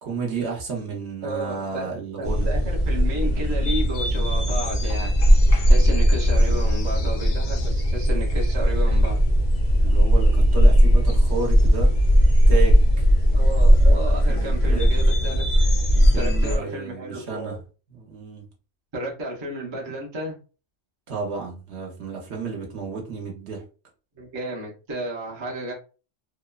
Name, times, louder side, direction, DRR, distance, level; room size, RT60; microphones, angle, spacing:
voice 1, 0.0-2.5 9.8-11.9 12.5-13.1 14.3-14.9 15.9-17.6 17.9-18.4 21.1-23.6, right 5 dB, 65° right, 0.9 m, -32 dB
voice 2, 1.2-1.9 2.2-9.2 13.3-15.4 16.1-17.6 18.9-20.4 24.1-25.7, right 1 dB, 30° right, 0.6 m, -32 dB
sound 1, 2.2-16.6, equal, 60° left, 0.4 m, -18 dB
2.8 x 2.1 x 2.2 m
omnidirectional pair, 1.3 m